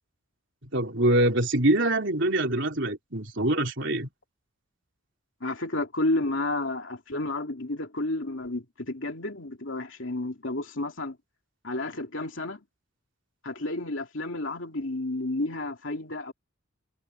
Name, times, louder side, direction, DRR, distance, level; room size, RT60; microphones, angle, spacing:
voice 1, 0.6-4.1, right 1 dB, 55° right, 3.9 m, -24 dB
voice 2, 5.4-11.2 11.6-12.6 13.4-16.3, left 2 dB, 65° left, 2.8 m, -31 dB
head